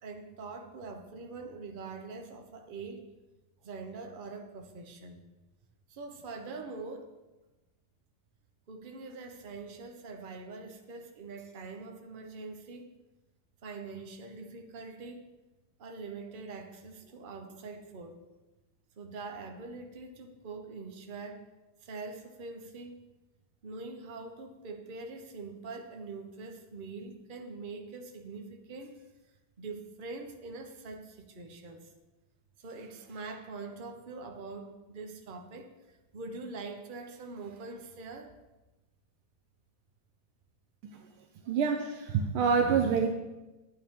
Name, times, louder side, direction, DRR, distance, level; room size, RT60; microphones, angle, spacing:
voice 1, 0.0-3.0 3.6-5.2 5.9-7.1 8.7-12.9 13.6-15.3 15.8-18.2 19.0-21.5 21.8-23.0 23.6-29.0 29.6-31.9 32.6-38.3, right 3 dB, 50° right, 5 dB, 0.6 m, -43 dB
voice 2, 41.5-43.1, right 6 dB, 80° right, 5 dB, 1.6 m, -26 dB
11.5 x 8.9 x 3.7 m, 1.1 s
omnidirectional pair, 2.3 m